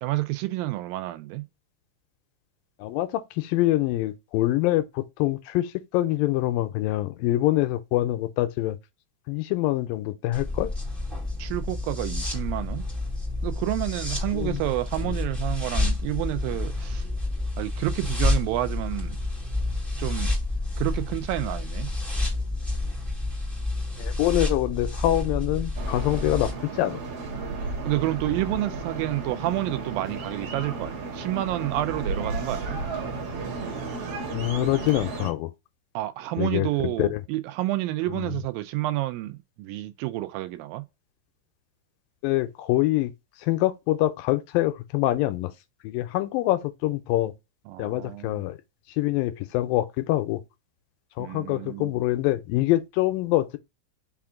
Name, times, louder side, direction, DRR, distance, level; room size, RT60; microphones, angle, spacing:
voice 1, 0.0-1.5 11.4-12.8 13.4-17.1 17.6-19.2 20.0-20.4 20.8-21.9 27.9-32.8 35.9-40.9 47.7-48.5 51.2-51.9, right 16 dB, 85° right, 2.3 m, -29 dB
voice 2, 2.8-8.8 9.3-10.7 14.3-14.6 15.0-15.1 24.0-27.0 34.3-35.5 36.4-37.2 38.1-38.3 42.2-43.1 43.4-45.5 45.8-47.3 47.8-48.6 49.0-50.4 51.2-53.6, left 16 dB, 85° left, 2.2 m, -25 dB
sound 1, 10.3-26.5, left 2 dB, ahead, 0.4 m, -29 dB
sound 2, 25.8-35.3, right 3 dB, 60° right, 1.7 m, -33 dB
5.8 x 2.4 x 3.6 m
omnidirectional pair, 4.1 m